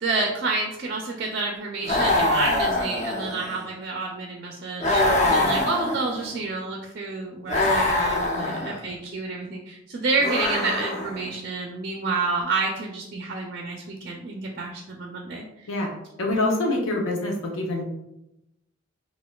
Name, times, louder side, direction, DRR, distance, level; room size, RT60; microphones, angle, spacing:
voice 1, 0.0-15.7, right 3 dB, 50° right, 1 dB, 0.3 m, -29 dB
sound 1, 1.8-3.6 4.8-6.4 7.5-8.8 10.2-11.3, left 2 dB, 35° left, 0.4 m, -24 dB
voice 2, 8.4-8.7 15.7-17.8, left 2 dB, 90° left, 0 dB, 0.6 m, -26 dB
4.2 x 2.4 x 2.2 m, 0.88 s
head